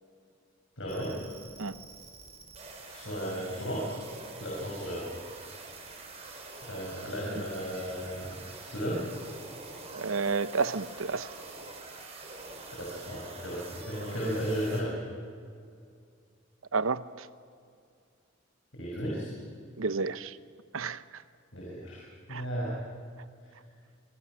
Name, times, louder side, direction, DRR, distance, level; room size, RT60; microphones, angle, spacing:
voice 1, 0.8-1.2 2.9-3.9 4.4-5.1 6.6-9.0 12.7-14.9 18.7-19.4 21.5-22.8, equal, 70° left, 6.1 m, -35 dB
sound 1, 0.9-14.8, right 3 dB, 30° right, 4.5 m, -46 dB
voice 2, 9.9-11.3 16.7-17.0 19.8-20.3 20.7-21.0 22.3-22.4, right 4 dB, 85° right, 0.8 m, -30 dB
26.0 x 23.5 x 6.3 m
head